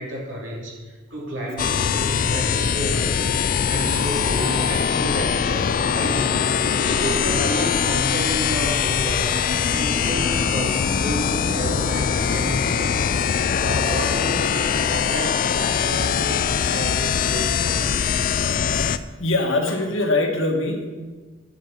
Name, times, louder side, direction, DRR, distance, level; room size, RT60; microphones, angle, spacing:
voice 1, 0.0-3.2 3.7-6.5 6.8-9.4 9.7-12.9 13.6-18.1, right 1 dB, 65° right, -3 dB, 2.8 m, -31 dB
sound 1, 1.6-19.0, left 7 dB, 45° left, 0.3 m, -22 dB
sound 2, 3.8-13.3, equal, ahead, 1.2 m, -38 dB
voice 2, 19.2-20.9, left 2 dB, 85° left, 1 dB, 1.6 m, -23 dB
10.5 x 4.7 x 7.1 m, 1.3 s
head